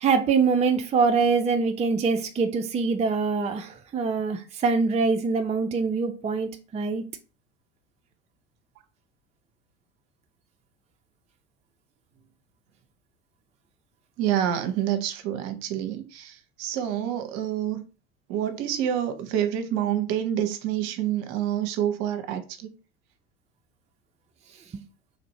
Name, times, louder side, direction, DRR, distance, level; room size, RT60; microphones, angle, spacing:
voice 1, 0.0-7.0 24.7-24.8, right 5 dB, 20° right, 0.5 m, -24 dB
voice 2, 14.2-17.8 18.3-22.7, right 10 dB, 55° right, 0.8 m, -27 dB
3.2 x 2.6 x 4.1 m
hypercardioid pair, 75°, 37 cm